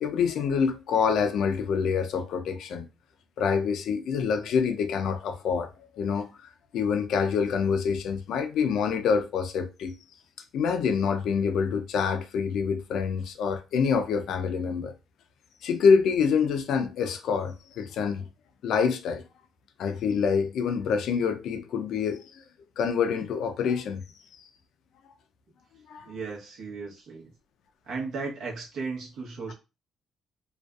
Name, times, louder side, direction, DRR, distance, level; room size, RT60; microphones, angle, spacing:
voice 1, 0.0-2.9 3.4-5.7 6.0-6.3 6.7-9.9 10.5-14.9 15.6-18.3 18.6-19.2 19.8-22.4 22.8-24.0 25.9-26.1, left 6 dB, 75° left, 0.4 m, -26 dB
voice 2, 26.1-27.3 27.9-29.5, right 4 dB, 70° right, 0.9 m, -35 dB
2.5 x 2.3 x 2.3 m
cardioid pair, 100°, 0 cm